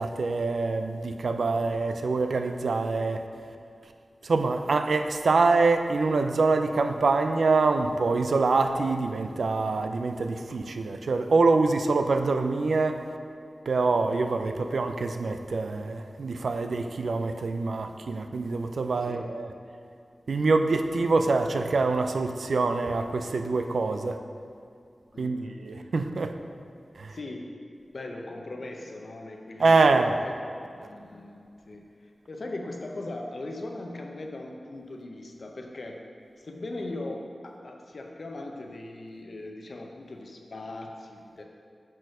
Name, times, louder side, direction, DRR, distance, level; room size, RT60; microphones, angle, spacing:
voice 1, 0.0-3.2 4.2-13.1 13.7-19.5 20.3-24.2 25.2-26.3 27.0-27.2 29.6-30.2, right 3 dB, 85° right, 7 dB, 0.4 m, -25 dB
voice 2, 19.0-19.3 25.1-25.6 27.1-27.5 27.9-30.4 30.7-36.0 36.4-41.4, left 2 dB, 60° left, 2 dB, 0.7 m, -39 dB
6.2 x 4.5 x 4.8 m, 2.4 s
wide cardioid pair, 95°, 0 cm